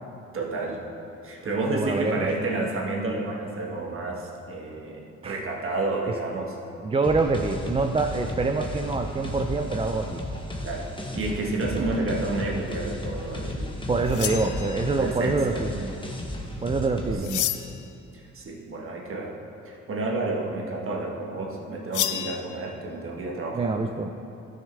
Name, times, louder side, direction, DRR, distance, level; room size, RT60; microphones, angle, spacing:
voice 1, 0.3-0.8 1.2-6.5 10.6-10.9 11.1-13.7 14.1-14.5 15.0-15.6 17.0-17.1 18.1-19.3 19.6-23.7, right 2 dB, 45° right, -1 dB, 1.5 m, -30 dB
voice 2, 1.7-2.2 5.2-5.4 6.8-10.2 13.9-15.9 16.6-17.5 23.5-24.1, right 3 dB, 20° right, 4 dB, 0.4 m, -26 dB
sound 1, 7.0-17.1, left 1 dB, 15° left, 1.1 m, -34 dB
sound 2, 14.1-15.0 17.2-17.9 21.9-22.4, left 12 dB, 75° left, 0.5 m, -29 dB
12.0 x 6.5 x 3.4 m, 2.7 s
cardioid pair, 90°, 30 cm